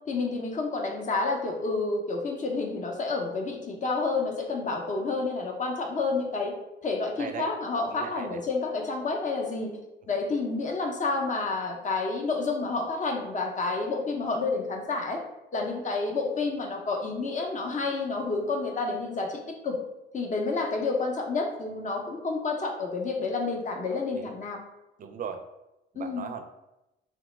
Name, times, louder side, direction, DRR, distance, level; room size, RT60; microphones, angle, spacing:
voice 1, 0.1-6.5 6.8-9.7 10.1-15.2 15.5-19.8 20.1-24.6 26.0-26.3, left 3 dB, 40° left, 1 dB, 0.7 m, -29 dB
voice 2, 7.9-8.4 24.1-24.3 25.0-25.4 25.9-26.4, right 7 dB, 45° right, 7 dB, 0.4 m, -37 dB
2.9 x 2.1 x 3.1 m, 0.94 s
cardioid pair, 90°, 20 cm